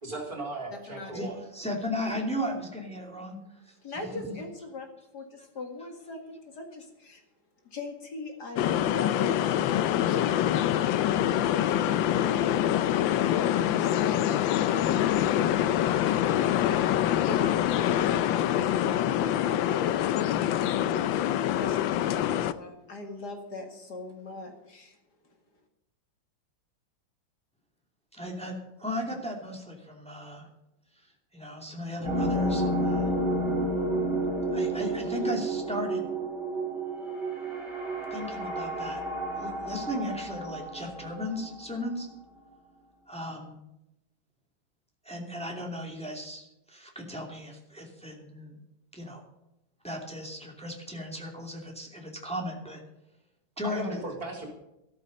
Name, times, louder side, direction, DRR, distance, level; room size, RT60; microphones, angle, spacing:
voice 1, 0.0-1.4 53.6-54.5, right 2 dB, 50° right, 1 dB, 4.3 m, -36 dB
voice 2, 0.7-1.3 3.2-3.4 3.8-7.2 7.6-10.7 11.1-12.6 13.1-16.2 16.6-18.0 18.3-20.4 20.7-25.0 25.2-25.3, left 2 dB, 55° left, 4 dB, 2.5 m, -41 dB
voice 3, 1.5-3.7 4.2-4.4 28.1-30.5 31.3-33.1 34.5-36.1 38.1-39.0 39.3-42.1 43.1-43.6 45.0-48.6 48.9-49.2 49.8-52.8 53.6-54.0, left 1 dB, 5° left, 0 dB, 2.6 m, -36 dB
sound 1, 8.6-22.5, left 11 dB, 80° left, 1.4 m, -25 dB
sound 2, 32.0-41.9, right 1 dB, 30° right, 6.2 m, -30 dB
13.5 x 13.5 x 5.3 m, 0.89 s
omnidirectional pair, 2.1 m